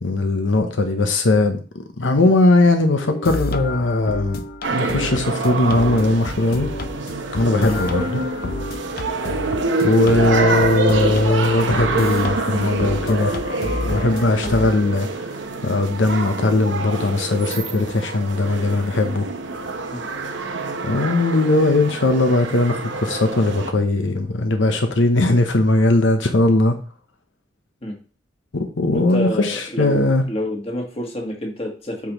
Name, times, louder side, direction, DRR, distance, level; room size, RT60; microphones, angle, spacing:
voice 1, 0.0-4.4 4.7-6.7 7.3-8.2 9.8-13.4 13.8-15.2 15.6-19.3 20.8-26.8 28.5-30.2, left 2 dB, 90° left, 0.9 m, -19 dB
sound 1, 3.0-14.7, left 2 dB, 55° left, 0.6 m, -30 dB
sound 2, 4.6-23.7, right 3 dB, 80° right, 1.0 m, -26 dB
voice 2, 28.9-32.1, left 1 dB, 30° left, 1.7 m, -28 dB
8.4 x 6.0 x 3.0 m
head